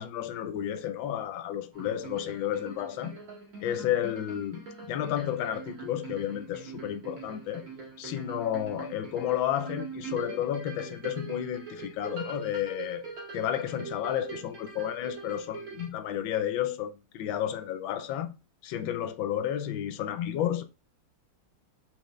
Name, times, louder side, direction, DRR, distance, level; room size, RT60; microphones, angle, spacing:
voice 1, 0.0-3.1 3.6-7.6 8.0-13.0 13.3-18.3 18.6-20.6, left 10 dB, 75° left, 1.3 m, -32 dB
sound 1, 1.7-15.9, right 4 dB, 70° right, 2.4 m, -43 dB
4.4 x 3.9 x 3.1 m
omnidirectional pair, 2.3 m